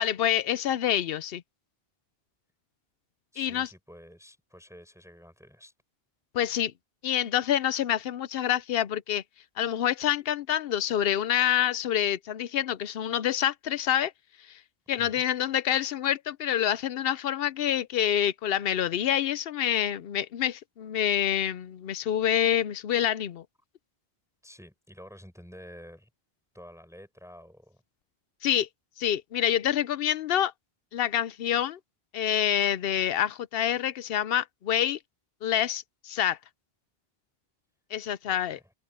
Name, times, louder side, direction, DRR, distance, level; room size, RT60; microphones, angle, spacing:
voice 1, 0.0-1.4 3.4-3.7 6.3-6.7 7.0-9.2 9.6-14.1 14.5-14.6 14.9-23.4 28.4-28.7 29.0-30.5 30.9-31.8 32.1-35.0 35.4-36.4 37.9-38.6, left 10 dB, 70° left, 0.8 m, -27 dB
voice 2, 3.3-5.7 15.0-15.2 24.4-26.1 26.5-27.8 38.3-38.7, equal, 5° right, 6.0 m, -49 dB
open air
omnidirectional pair, 1.0 m